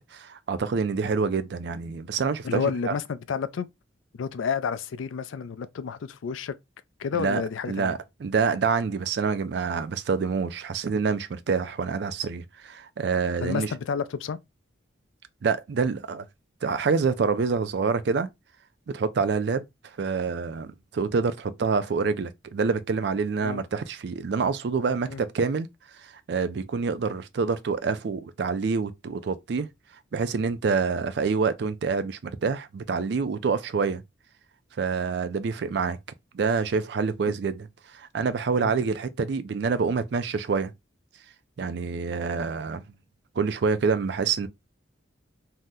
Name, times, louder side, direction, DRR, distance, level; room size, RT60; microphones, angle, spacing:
voice 1, 0.1-2.9 7.2-7.4 7.7-13.7 15.4-16.3 16.6-18.3 18.9-19.7 20.0-25.7 26.0-29.7 30.1-34.0 34.8-36.0 36.3-40.7 41.6-42.8 43.4-44.5, right 5 dB, 60° right, 0.4 m, -27 dB
voice 2, 2.4-3.7 4.1-6.5 7.0-7.9 13.4-14.4 23.4-23.6 25.1-25.2 37.3-37.4 38.6-38.7, left 6 dB, 85° left, 0.4 m, -30 dB
2.8 x 2.0 x 3.5 m
head